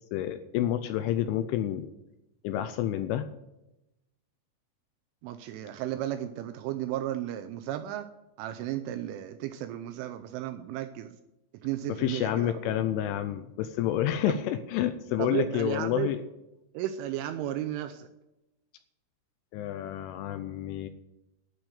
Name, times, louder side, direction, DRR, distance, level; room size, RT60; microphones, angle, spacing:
voice 1, 0.1-1.9 2.4-3.3 12.0-16.2 19.5-20.9, left 11 dB, 80° left, 9 dB, 2.9 m, -29 dB
voice 2, 5.2-8.1 8.4-11.2 11.5-12.5 14.3-14.4 15.2-16.1 16.7-18.1, right 12 dB, 85° right, 8 dB, 2.9 m, -34 dB
12.0 x 6.2 x 8.9 m, 0.93 s
omnidirectional pair, 6.0 m